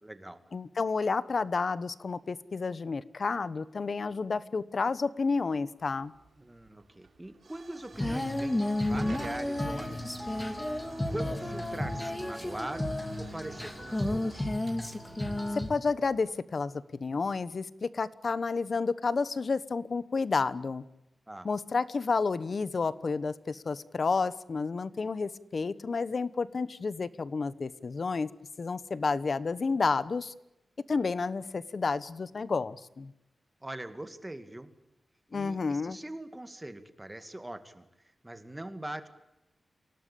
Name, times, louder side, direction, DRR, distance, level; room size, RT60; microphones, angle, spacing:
voice 1, 0.0-0.4 6.4-10.4 11.1-12.9 13.2-14.6 21.3-21.5 33.6-34.7 35.3-37.8 38.2-39.1, right 1 dB, 15° right, 8 dB, 2.2 m, -42 dB
voice 2, 0.5-6.1 15.7-20.8 21.4-28.3 28.6-30.3 30.9-33.1 35.3-36.0, left 4 dB, 50° left, 16 dB, 1.1 m, -30 dB
Hiss / Fire / Tick, 5.8-16.2, right 4 dB, 65° right, 6.2 m, -50 dB
Female singing, 7.9-15.7, left 1 dB, 15° left, 2.5 m, -32 dB
28.5 x 18.0 x 8.5 m, 0.91 s
wide cardioid pair, 135°, 0 cm